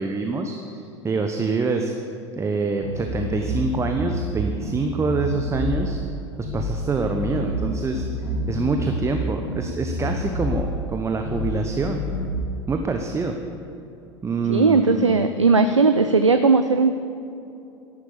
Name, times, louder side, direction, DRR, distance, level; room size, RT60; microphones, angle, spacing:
voice 1, 0.0-1.9 2.4-6.0 6.4-8.1 8.5-12.0 12.7-13.4 14.2-15.2, right 4 dB, 20° right, 4 dB, 1.0 m, -26 dB
sound 1, 2.8-4.3 4.6-5.9 6.4-6.7 7.0-9.1 9.4-10.7 11.2-11.5 11.8-12.4, left 1 dB, 60° left, 2.8 m, -28 dB
voice 2, 14.5-16.9, right 4 dB, 85° right, 9 dB, 0.5 m, -17 dB
14.0 x 11.0 x 7.1 m, 2.7 s
figure-of-eight pair, 75°, 15 cm